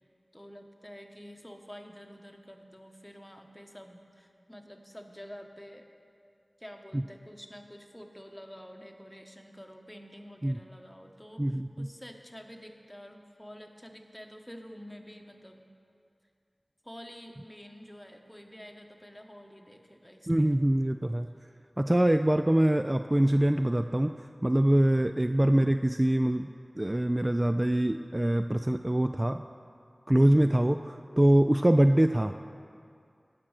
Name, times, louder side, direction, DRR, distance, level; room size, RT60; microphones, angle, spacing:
voice 1, 0.3-5.9 6.6-15.6 16.8-20.6, equal, 10° left, 3 dB, 1.2 m, -48 dB
voice 2, 11.4-11.9 20.3-21.3 21.8-26.5 26.8-29.4 30.1-32.4, right 1 dB, 25° right, 8 dB, 0.3 m, -24 dB
16.5 x 6.0 x 6.5 m, 2.4 s
wide cardioid pair, 45°, 0 cm